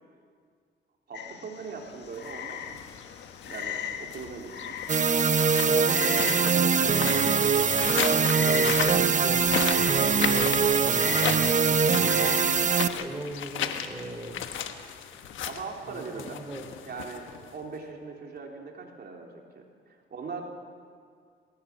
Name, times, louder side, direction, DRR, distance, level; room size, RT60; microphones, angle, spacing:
Frog, 1.1-12.5, left 8 dB, 60° left, 1.6 m, -39 dB
voice 1, 1.1-2.8 3.4-4.8 5.6-6.4 15.5-16.4 16.9-20.4, right 4 dB, 55° right, 1 dB, 3.4 m, -41 dB
sound 1, 2.0-17.7, left 9 dB, 90° left, 1.3 m, -36 dB
sound 2, 4.9-12.9, right 6 dB, 40° right, 1.0 m, -23 dB
voice 2, 5.7-8.0 8.3-12.4 12.9-14.4 15.2-15.4 15.8-16.7, right 1 dB, 15° right, 4 dB, 3.1 m, -39 dB
23.0 x 16.0 x 7.3 m, 2.1 s
cardioid pair, 80°, 19 cm